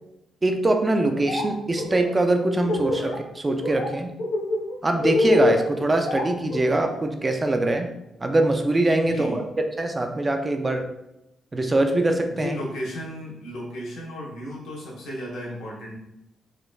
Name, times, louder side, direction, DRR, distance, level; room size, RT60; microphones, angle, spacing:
voice 1, 0.4-4.1 4.8-7.9 8.2-9.4 9.8-10.9 11.5-12.5, right 2 dB, 25° right, 5 dB, 0.4 m, -23 dB
Laughter, 1.0-1.4 1.7-3.1 3.5-3.9 4.2-7.0, left 2 dB, 70° left, 1.0 m, -25 dB
voice 2, 9.0-9.5 12.3-16.0, equal, 90° left, -4 dB, 1.3 m, -34 dB
4.0 x 3.1 x 2.3 m, 0.87 s
cardioid pair, 100°, 0 cm